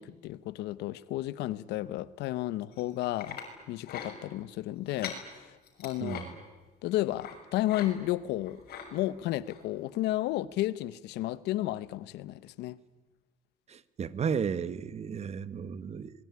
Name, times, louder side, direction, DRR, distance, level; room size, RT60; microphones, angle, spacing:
voice 1, 0.0-3.4 3.7-6.2 6.8-8.6 8.9-12.8, left 15 dB, 85° left, 1.0 m, -32 dB
sound 1, 2.7-3.5 3.8-4.1 4.8-5.2 5.7-6.2 7.2-7.4 7.6-7.9 8.2-8.9 9.5-9.6 10.1-10.2, left 8 dB, 65° left, 6.7 m, -41 dB
voice 2, 6.0-6.3 13.7-16.1, right 6 dB, 40° right, 1.3 m, -34 dB
27.0 x 22.0 x 9.7 m
cardioid pair, 110°, 17 cm